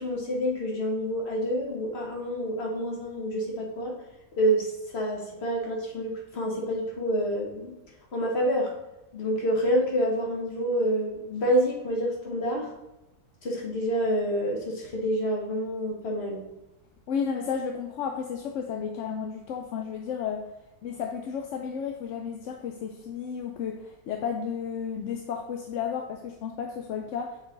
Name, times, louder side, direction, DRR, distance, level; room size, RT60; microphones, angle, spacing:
voice 1, 0.0-3.9 4.4-7.7 8.1-8.7 9.1-12.7 13.4-16.4, equal, 45° left, 0 dB, 1.5 m, -28 dB
voice 2, 17.1-20.5 20.8-27.4, left 7 dB, 65° left, 3 dB, 0.8 m, -33 dB
7.1 x 3.9 x 3.8 m, 0.99 s
omnidirectional pair, 1.6 m